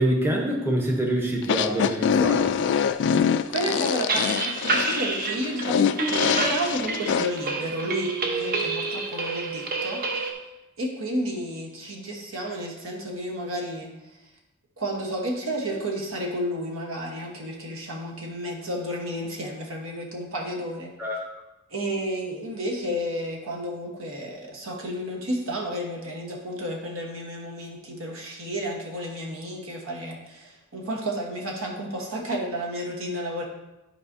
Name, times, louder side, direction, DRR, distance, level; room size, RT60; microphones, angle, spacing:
voice 1, 0.0-2.6 21.0-21.2, right 1 dB, 10° right, 0 dB, 0.9 m, -25 dB
sound 1, 1.4-7.3, left 7 dB, 60° left, 0.3 m, -24 dB
voice 2, 3.5-10.3 10.8-13.9 14.8-20.9 21.7-33.4, equal, 70° right, 0 dB, 1.3 m, -31 dB
sound 2, 3.7-10.3, right 3 dB, 45° right, 0.8 m, -28 dB
10.5 x 4.9 x 2.7 m, 0.99 s
head